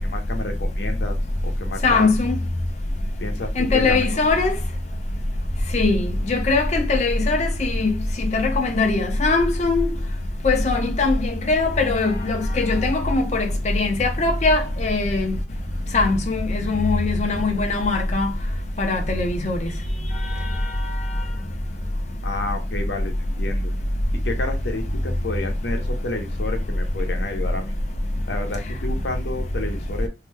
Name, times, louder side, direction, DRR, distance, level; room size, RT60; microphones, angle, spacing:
voice 1, 0.0-1.2 1.4-2.1 3.2-4.2 22.2-23.7 24.2-27.8 28.3-30.1, left 2 dB, 75° left, 0.8 m, -30 dB
voice 2, 1.8-2.4 3.6-4.5 5.7-6.0 6.3-7.9 8.3-9.9 10.4-13.5 13.7-15.3 15.9-18.3 18.8-19.6, left 3 dB, 40° left, 0.6 m, -20 dB
2.7 x 2.1 x 3.3 m
head